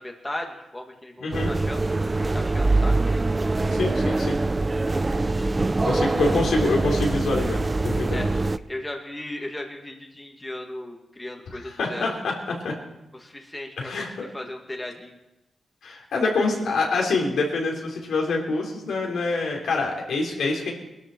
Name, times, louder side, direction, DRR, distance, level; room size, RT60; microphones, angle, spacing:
voice 1, 0.0-1.8 2.2-3.0 8.1-8.3 8.7-12.2 13.1-14.1 14.3-15.2, left 1 dB, 15° left, 2 dB, 1.9 m, -36 dB
voice 2, 1.2-1.5 3.7-4.4 5.8-8.3 11.5-12.7 13.8-14.3 15.8-20.7, left 3 dB, 85° left, -1 dB, 3.7 m, -26 dB
sound 1, 1.3-8.6, right 2 dB, 25° right, 0.5 m, -23 dB
21.5 x 13.0 x 4.5 m, 0.95 s
cardioid pair, 95°, 0 cm